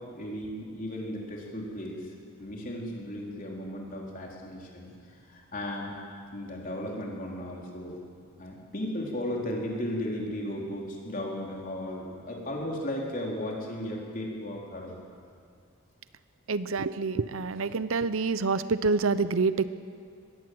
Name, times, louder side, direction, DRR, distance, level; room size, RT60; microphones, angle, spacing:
voice 1, 0.1-2.1 2.4-4.9 5.3-5.9 6.3-8.0 8.4-15.0, left 1 dB, 40° left, -1 dB, 3.8 m, -35 dB
voice 2, 16.5-19.6, right 4 dB, 70° right, 14 dB, 0.7 m, -27 dB
21.0 x 16.5 x 7.8 m, 2.2 s
head